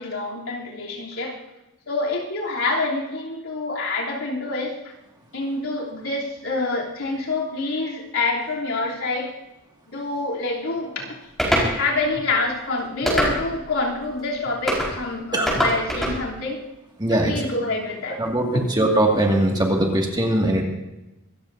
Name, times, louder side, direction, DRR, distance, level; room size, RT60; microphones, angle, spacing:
voice 1, 0.0-1.4 1.9-4.9 5.3-9.3 9.9-11.2 11.6-16.6 17.1-18.2 18.5-18.6, left 3 dB, 75° left, -3 dB, 3.3 m, -27 dB
sound 1, 11.4-11.7 13.1-13.6 14.7-14.9 15.5-16.2, equal, ahead, 4.6 m, -22 dB
voice 2, 17.0-17.3 18.2-20.6, right 1 dB, 20° right, 0 dB, 2.1 m, -20 dB
25.0 x 14.0 x 2.7 m, 1.0 s
head